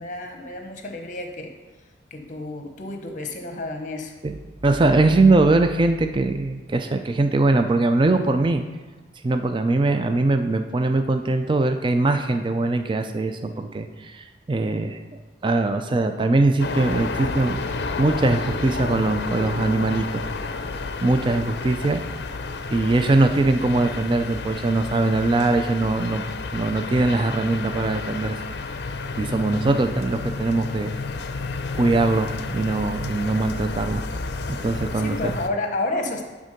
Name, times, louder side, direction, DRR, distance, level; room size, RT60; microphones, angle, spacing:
voice 1, 0.0-1.5 2.1-4.1 21.6-21.9 35.0-36.2, left 2 dB, 45° left, 4 dB, 0.9 m, -30 dB
voice 2, 4.2-8.6 9.2-15.0 15.4-17.6 18.0-20.2 21.0-22.0 22.7-26.2 26.5-28.4 29.2-30.9 31.7-34.1 34.5-35.4, right 2 dB, 25° right, 7 dB, 0.4 m, -21 dB
sound 1, 16.6-35.5, left 3 dB, 60° left, 0.5 m, -31 dB
10.5 x 3.7 x 5.2 m, 1.2 s
head